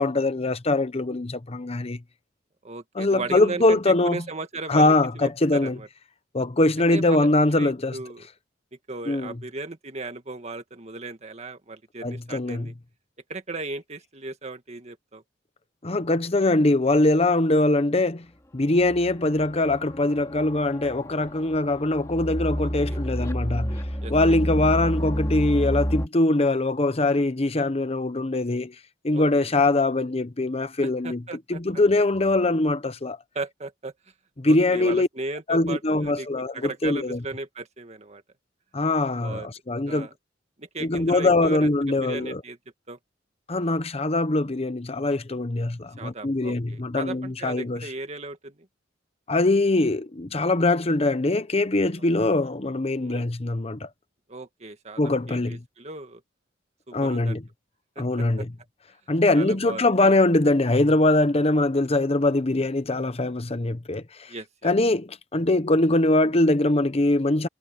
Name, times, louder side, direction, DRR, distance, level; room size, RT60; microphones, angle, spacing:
voice 1, 0.0-2.0 2.9-4.2 4.7-5.8 6.3-8.0 9.1-9.4 12.0-12.7 15.8-18.3 18.5-23.8 24.1-28.7 29.0-31.2 31.5-33.2 34.4-35.1 35.5-37.2 38.7-40.1 40.8-42.4 43.5-47.9 49.3-53.9 55.0-55.6 56.9-57.4 58.0-58.5 59.1-64.3 64.6-67.5, left 2 dB, 35° left, 0.9 m, -22 dB
voice 2, 2.6-5.9 6.9-8.3 8.9-12.7 13.3-15.2 22.9-23.0 24.0-24.4 29.1-29.5 30.8-31.6 33.4-33.9 34.4-36.3 36.5-38.2 39.2-39.5 39.9-40.1 40.6-42.6 42.9-43.0 46.0-48.6 53.0-53.2 54.3-55.0 55.3-56.2 56.9-57.4 58.0-58.1 58.4-58.5 59.3-60.2 64.3-64.7, right 3 dB, 35° right, 2.0 m, -36 dB
sound 1, 18.8-26.1, equal, 15° left, 2.6 m, -30 dB
head